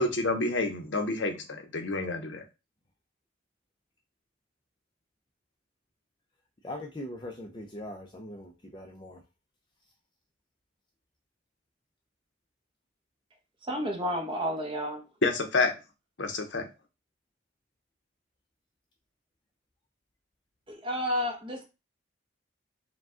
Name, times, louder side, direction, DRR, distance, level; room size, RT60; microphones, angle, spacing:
voice 1, 0.0-2.4 15.2-15.7 16.2-16.7, left 2 dB, 70° left, 0.8 m, -28 dB
voice 2, 6.6-9.2, left 1 dB, 25° left, 0.5 m, -41 dB
voice 3, 13.7-15.0 20.7-21.6, equal, 25° right, 0.9 m, -31 dB
4.8 x 2.3 x 3.7 m
head